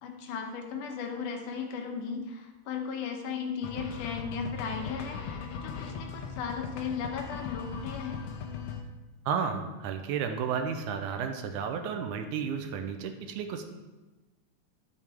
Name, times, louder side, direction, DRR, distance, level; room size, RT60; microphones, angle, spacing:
voice 1, 0.0-8.2, left 6 dB, 90° left, 3 dB, 2.6 m, -36 dB
sound 1, 3.6-8.8, left 6 dB, 70° left, 1.8 m, -39 dB
voice 2, 9.3-13.6, right 6 dB, 85° right, 6 dB, 2.1 m, -32 dB
11.0 x 7.2 x 3.5 m, 1.1 s
omnidirectional pair, 3.5 m